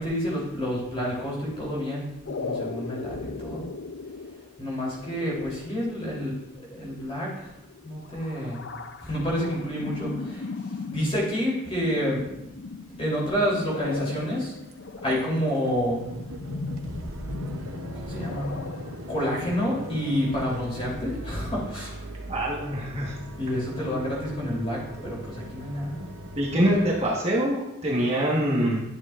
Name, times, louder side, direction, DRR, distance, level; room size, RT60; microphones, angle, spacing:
voice 1, 0.0-3.6 4.6-7.6 7.8-8.6 9.0-12.3 13.0-14.5 15.0-16.0 17.9-18.5 19.1-22.1 23.4-26.0, equal, 25° left, -4 dB, 3.1 m, -29 dB
sound 1, 2.3-21.5, left 3 dB, 55° left, 0.4 m, -38 dB
sound 2, 13.4-13.5 14.0-14.4 14.7-14.8 15.1-15.2 15.5-27.0, right 1 dB, 90° right, 0.7 m, -40 dB
voice 2, 22.3-23.2 25.0-25.1 26.3-28.8, equal, 30° right, -4 dB, 1.2 m, -24 dB
11.5 x 7.0 x 2.4 m, 0.88 s
head